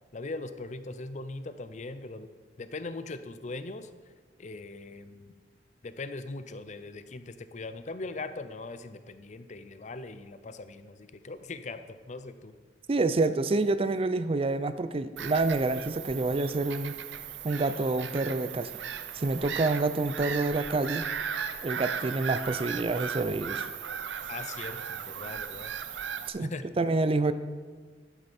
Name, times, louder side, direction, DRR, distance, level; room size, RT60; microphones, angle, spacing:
voice 1, 0.1-2.3 2.6-3.9 4.4-5.3 5.8-12.5 24.3-25.7 26.4-26.7, left 3 dB, 40° left, 11 dB, 0.5 m, -40 dB
voice 2, 12.9-17.0 17.4-18.7 19.1-21.0 21.6-23.7 26.3-27.3, right 3 dB, 30° right, 12 dB, 0.4 m, -28 dB
Bird vocalization bird call bird song / Gull seagull, 15.2-26.3, right 7 dB, 80° right, 0.6 m, -37 dB
11.0 x 9.0 x 4.3 m, 1.5 s
head